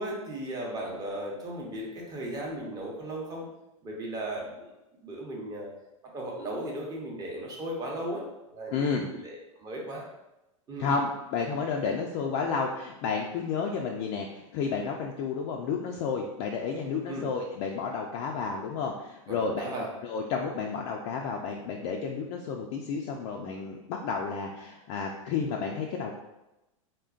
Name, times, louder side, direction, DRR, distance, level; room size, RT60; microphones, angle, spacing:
voice 1, 0.0-3.5 3.8-4.7 5.0-5.7 6.1-8.3 8.5-10.1 10.7-10.9 17.1-17.3 19.3-19.9, right 1 dB, 25° right, -2 dB, 0.7 m, -36 dB
voice 2, 8.7-9.1 10.8-19.7 20.0-26.1, left 5 dB, 50° left, 0 dB, 0.4 m, -31 dB
3.7 x 2.1 x 2.4 m, 0.95 s
hypercardioid pair, 125°, 17 cm